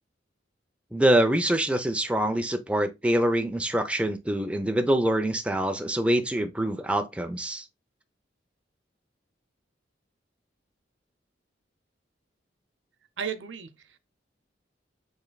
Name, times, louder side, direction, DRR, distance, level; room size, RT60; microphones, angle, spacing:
voice 1, 0.9-7.6, right 1 dB, 5° right, 0.5 m, -25 dB
voice 2, 13.2-14.0, right 7 dB, 80° right, 0.7 m, -35 dB
7.1 x 3.2 x 2.2 m
head